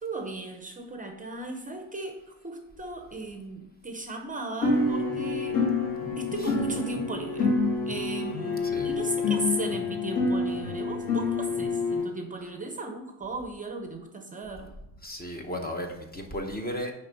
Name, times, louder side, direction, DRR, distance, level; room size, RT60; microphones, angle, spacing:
voice 1, 0.0-5.7 6.1-7.5 7.9-14.7, right 2 dB, 20° right, 5 dB, 0.7 m, -36 dB
sound 1, 4.6-12.0, left 3 dB, 55° left, 2.5 m, -27 dB
voice 2, 15.0-16.9, equal, 20° left, 3 dB, 0.9 m, -35 dB
9.7 x 3.5 x 5.3 m, 0.90 s
cardioid pair, 155°, 44 cm